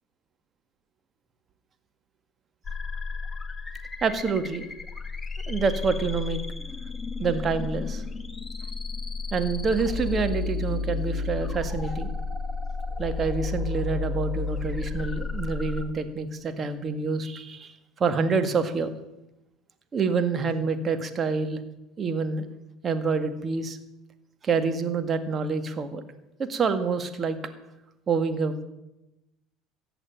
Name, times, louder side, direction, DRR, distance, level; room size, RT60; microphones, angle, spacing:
sound 1, 2.6-15.8, left 4 dB, 15° left, 1.8 m, -32 dB
voice 1, 4.0-4.7 5.5-6.4 7.2-8.0 9.3-12.1 13.0-17.7 18.0-18.9 19.9-21.6 22.0-22.4 22.8-23.8 24.4-26.0 26.4-27.4 28.1-28.6, right 5 dB, 35° right, 9 dB, 1.9 m, -27 dB
15.0 x 8.1 x 9.0 m, 0.93 s
hypercardioid pair, 75°, 0 cm